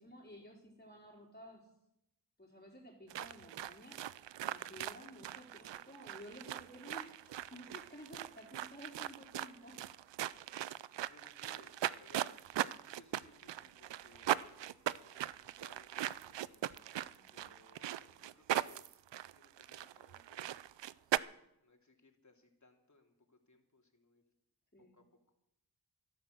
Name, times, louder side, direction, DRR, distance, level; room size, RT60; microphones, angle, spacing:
voice 1, 0.0-1.7 2.4-4.0 4.4-9.8 10.3-10.7 17.0-17.4 24.7-25.0, equal, 25° left, -2 dB, 4.2 m, -54 dB
voice 2, 0.9-1.2 4.6-4.8 10.7-11.7 12.0-16.6 17.3-19.1 19.3-24.3 24.8-25.0, left 2 dB, 40° left, 2 dB, 3.1 m, -65 dB
sound 1, 3.1-21.2, right 12 dB, 85° right, 0.5 m, -40 dB
13.5 x 12.0 x 6.5 m, 0.82 s
cardioid pair, 45°, 42 cm